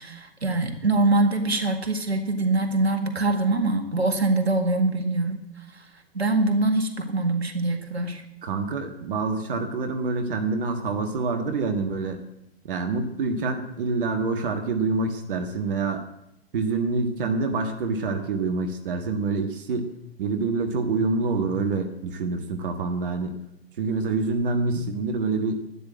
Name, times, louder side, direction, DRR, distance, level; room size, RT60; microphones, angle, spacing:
voice 1, 0.0-5.4 5.7-5.8 6.1-8.2, right 2 dB, 80° right, 6 dB, 1.9 m, -23 dB
voice 2, 8.4-12.2 12.6-16.0 16.5-19.9 20.2-23.4 23.8-25.6, right 3 dB, 55° right, 5 dB, 1.7 m, -26 dB
12.5 x 9.6 x 7.7 m, 0.83 s
figure-of-eight pair, 110°, 31 cm